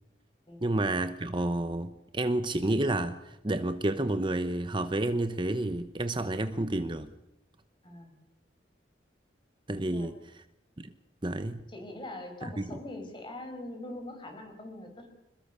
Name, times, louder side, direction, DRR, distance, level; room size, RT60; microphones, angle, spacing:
voice 1, 0.6-7.1 9.7-10.1 10.8-10.9 11.2-11.6 12.4-12.6, right 1 dB, 25° right, 0.9 m, -30 dB
voice 2, 7.8-8.1 9.8-10.1 11.7-15.1, left 1 dB, 25° left, 5.6 m, -42 dB
27.0 x 21.5 x 6.9 m
head